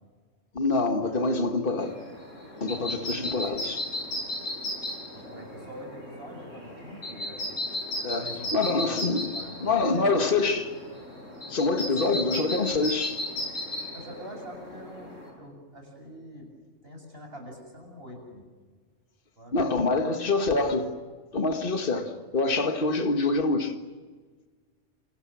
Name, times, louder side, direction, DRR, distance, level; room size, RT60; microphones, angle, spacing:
voice 1, 0.5-2.0 2.6-3.8 8.0-9.3 9.6-10.7 11.5-13.2 19.5-21.0 21.3-23.8, left 3 dB, 45° left, 2.0 m, -26 dB
sound 1, 1.8-15.3, left 1 dB, 80° left, 8.1 m, -35 dB
voice 2, 2.7-3.2 5.1-7.6 8.0-10.1 11.7-12.2 13.9-16.5 16.8-18.4 19.3-19.6 19.9-20.3, equal, 50° right, 7.7 m, -45 dB
28.0 x 27.5 x 6.3 m
omnidirectional pair, 1.3 m